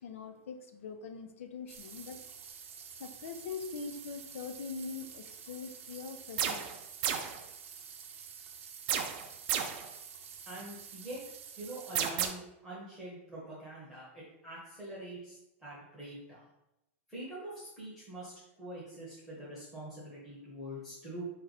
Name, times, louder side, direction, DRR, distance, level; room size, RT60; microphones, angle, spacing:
voice 1, 0.0-2.2 3.0-6.8, left 5 dB, 75° left, 7 dB, 0.7 m, -43 dB
sound 1, 1.7-12.0, right 7 dB, 90° right, 0.8 m, -49 dB
sound 2, 6.4-6.7 7.0-7.4 8.9-9.9 11.9-12.3, right 9 dB, 35° right, 0.4 m, -32 dB
voice 2, 10.5-11.2 11.6-15.4 15.6-16.4 17.1-18.3 18.6-21.2, right 1 dB, ahead, -9 dB, 0.9 m, -44 dB
4.3 x 3.1 x 4.0 m, 0.87 s
supercardioid pair, 175°, 7 cm